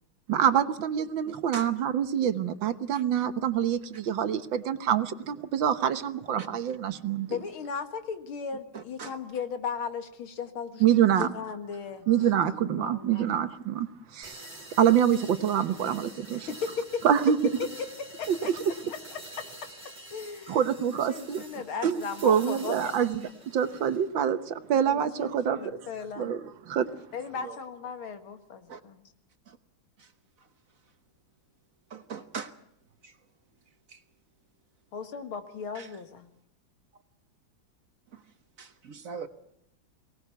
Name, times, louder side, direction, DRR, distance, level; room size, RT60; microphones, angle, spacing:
voice 1, 0.3-7.4 10.8-11.3 12.1-13.9 14.1-14.4 14.8-16.5 17.0-17.4 18.3-18.4 20.5-21.4 21.8-23.2 23.5-25.6 26.2-26.4 26.7-26.9, right 9 dB, 70° right, 1.7 m, -25 dB
voice 2, 1.2-1.7 2.9-3.0 6.4-6.5 8.7-9.2 11.2-11.3 21.5-21.9 27.4-27.6 28.7-28.8 29.5-29.6 30.0-30.1 31.9-32.5 33.0-33.1 33.9-34.0 35.7-35.9 38.1-38.2 38.6-39.3, right 6 dB, 50° right, 1.2 m, -41 dB
voice 3, 7.3-13.3 16.3-17.1 17.8-18.5 18.9-19.5 20.1-20.6 20.9-23.0 24.8-26.3 27.1-29.1 34.9-36.3, left 6 dB, 85° left, 2.5 m, -37 dB
sound 1, 14.2-24.1, right 1 dB, 15° right, 3.6 m, -47 dB
23.5 x 18.5 x 6.9 m
omnidirectional pair, 2.2 m